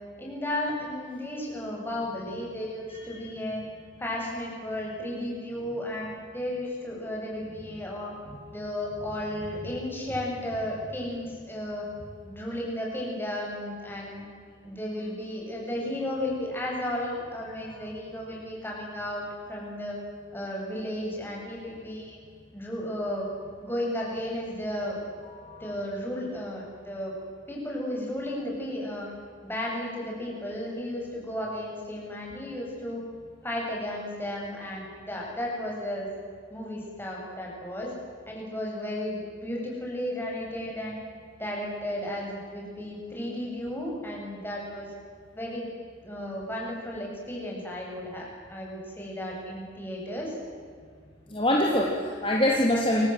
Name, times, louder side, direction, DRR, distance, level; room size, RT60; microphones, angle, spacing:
voice 1, 0.2-3.6 4.0-8.1 8.5-11.9 12.2-14.3 14.6-20.0 20.3-22.2 22.5-23.3 23.6-25.0 25.6-27.1 27.5-29.1 29.4-33.0 33.4-36.1 36.5-37.9 38.3-40.9 41.4-44.9 45.3-45.7 46.0-50.3, left 1 dB, 10° left, -2 dB, 7.8 m, -34 dB
voice 2, 2.9-3.3 8.3-8.4 25.4-25.6 51.3-53.1, left 1 dB, 25° left, -1 dB, 3.2 m, -25 dB
29.5 x 25.5 x 7.9 m, 2.1 s
head